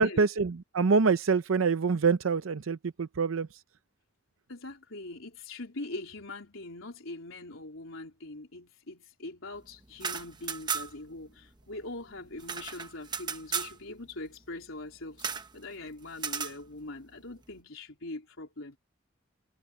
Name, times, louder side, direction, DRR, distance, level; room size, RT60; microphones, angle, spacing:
voice 1, 0.0-3.5, right 4 dB, 90° right, 0.6 m, -25 dB
voice 2, 4.5-18.8, left 2 dB, 85° left, 3.7 m, -42 dB
sound 1, 9.9-11.1 11.4-11.5 11.8-13.8 15.2-15.5 16.2-16.6, right 6 dB, 20° right, 0.9 m, -35 dB
head